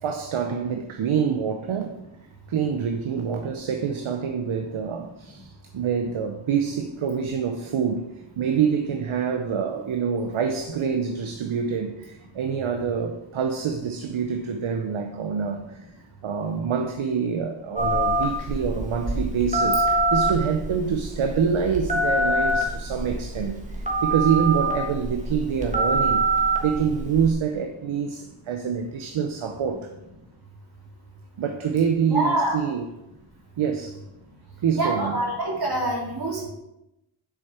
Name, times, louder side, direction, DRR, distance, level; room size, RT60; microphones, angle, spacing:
voice 1, 0.0-2.0 2.5-15.9 16.2-26.2 26.6-29.9 31.4-32.9 33.6-34.0 34.6-35.2, right 7 dB, 75° right, 0.7 m, -26 dB
Telephone, 17.8-27.3, right 2 dB, 15° right, 1.5 m, -25 dB
voice 2, 32.1-32.6 34.8-36.4, right 1 dB, 50° right, 2.9 m, -25 dB
7.3 x 6.5 x 4.3 m
wide cardioid pair, 115°, 49 cm